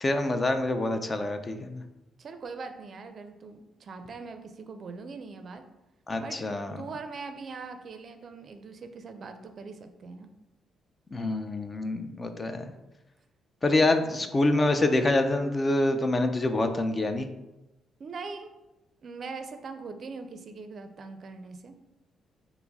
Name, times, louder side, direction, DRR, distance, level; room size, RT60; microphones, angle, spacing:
voice 1, 0.0-1.8 6.1-6.8 11.1-12.7 13.6-17.3, left 2 dB, 30° left, 7 dB, 0.4 m, -26 dB
voice 2, 2.2-5.6 6.2-10.3 13.9-14.5 18.0-18.5 19.0-21.7, right 4 dB, 50° right, 7 dB, 0.4 m, -41 dB
4.6 x 2.0 x 3.9 m, 0.98 s
cardioid pair, 85°, 0 cm